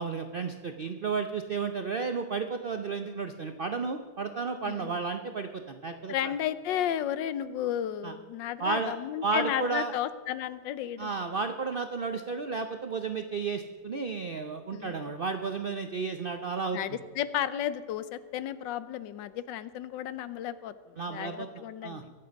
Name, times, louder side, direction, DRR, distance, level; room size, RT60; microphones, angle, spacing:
voice 1, 0.0-6.3 8.0-8.1 8.6-9.0 9.2-9.9 11.0-16.8 21.0-22.0, right 4 dB, 70° right, 7 dB, 0.5 m, -33 dB
voice 2, 4.7-5.0 6.1-11.1 14.7-15.0 16.7-20.7 21.1-22.1, left 10 dB, 90° left, 14 dB, 1.4 m, -33 dB
23.0 x 7.7 x 5.2 m, 1.5 s
omnidirectional pair, 1.9 m